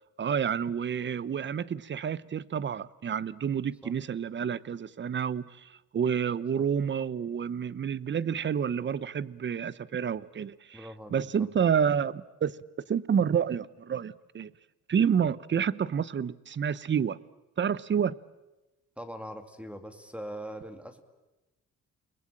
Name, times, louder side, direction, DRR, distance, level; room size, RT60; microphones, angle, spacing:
voice 1, 0.2-12.6 12.9-14.5 14.9-17.2 17.6-18.1, right 7 dB, 40° right, 0.8 m, -29 dB
voice 2, 10.7-11.2 19.0-21.0, equal, 5° right, 2.2 m, -41 dB
29.5 x 21.0 x 8.9 m
cardioid pair, 90°, 30 cm